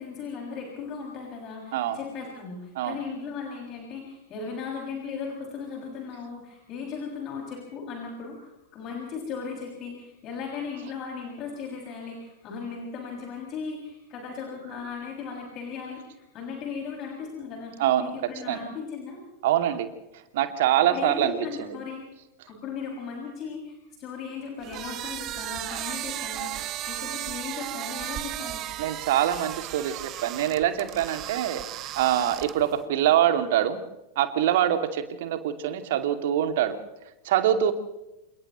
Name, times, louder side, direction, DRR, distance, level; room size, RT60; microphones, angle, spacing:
voice 1, 0.0-19.2 20.8-22.0 22.5-28.7, left 5 dB, 35° left, -1 dB, 6.4 m, -37 dB
voice 2, 17.8-18.1 18.5-18.6 19.4-19.9 20.3-21.3 28.8-33.8 34.2-36.8 37.2-37.7, right 11 dB, 55° right, 7 dB, 2.5 m, -24 dB
sound 1, 24.6-32.8, right 14 dB, 35° right, 0.8 m, -35 dB
29.0 x 28.0 x 3.2 m, 0.94 s
figure-of-eight pair, 90°, 0 cm